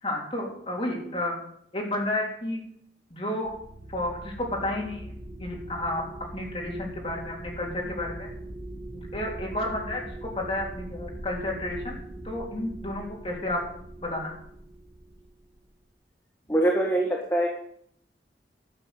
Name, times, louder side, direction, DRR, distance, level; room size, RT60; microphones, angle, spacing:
voice 1, 0.0-1.4 1.7-2.6 3.1-3.5 3.9-5.1 5.4-6.0 6.3-8.3 8.9-13.6 14.0-14.3, left 1 dB, 30° left, -1 dB, 3.7 m, -31 dB
sound 1, 3.4-15.7, right 1 dB, 30° right, 2.0 m, -41 dB
voice 2, 16.5-17.5, right 1 dB, 15° left, -1 dB, 1.4 m, -23 dB
12.0 x 6.9 x 8.1 m, 0.68 s
head